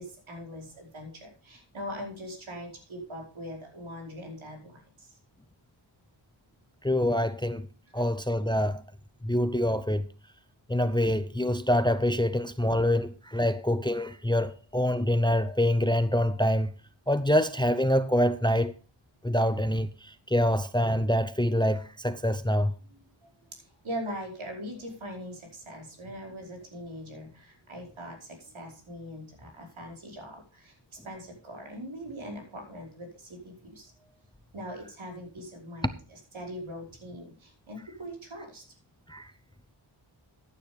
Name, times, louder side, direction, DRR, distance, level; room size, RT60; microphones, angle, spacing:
voice 1, 0.0-5.2 7.9-8.0 22.8-34.1 34.5-38.6, equal, 75° right, 5.0 m, -42 dB
voice 2, 6.8-7.7 7.9-8.8 9.2-10.1 10.7-16.7 17.1-18.7 19.2-22.7 39.1-39.3, equal, 10° left, 0.6 m, -25 dB
14.5 x 9.3 x 3.4 m
wide cardioid pair, 90°, 48 cm